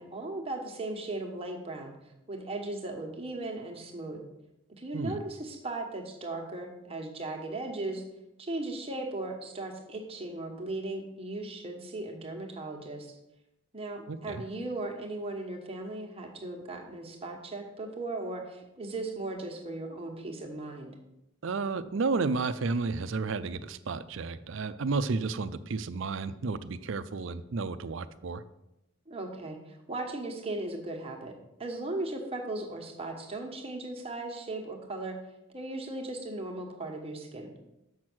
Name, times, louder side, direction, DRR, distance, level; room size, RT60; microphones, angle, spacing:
voice 1, 0.0-1.9 2.3-4.2 4.8-8.0 8.4-13.2 13.7-21.0 29.1-31.3 31.6-35.2 35.5-37.5, right 2 dB, 30° right, 2 dB, 1.3 m, -37 dB
voice 2, 14.1-14.4 21.4-28.4, right 4 dB, 65° right, 13 dB, 0.5 m, -32 dB
7.3 x 6.1 x 6.2 m, 0.89 s
head